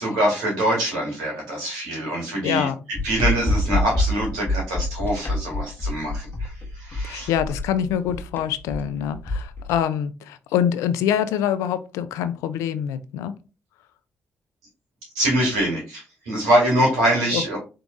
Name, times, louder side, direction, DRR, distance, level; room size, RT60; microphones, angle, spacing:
voice 1, 0.0-2.7 3.0-7.3 15.1-17.6, right 1 dB, 90° right, -2 dB, 2.2 m, -24 dB
voice 2, 2.4-2.8 7.0-13.3 17.3-17.6, left 9 dB, 80° left, 12 dB, 0.4 m, -25 dB
sound 1, 2.9-9.8, left 1 dB, 40° left, 1.0 m, -26 dB
4.6 x 3.9 x 2.4 m, 0.32 s
hypercardioid pair, 45°, 5 cm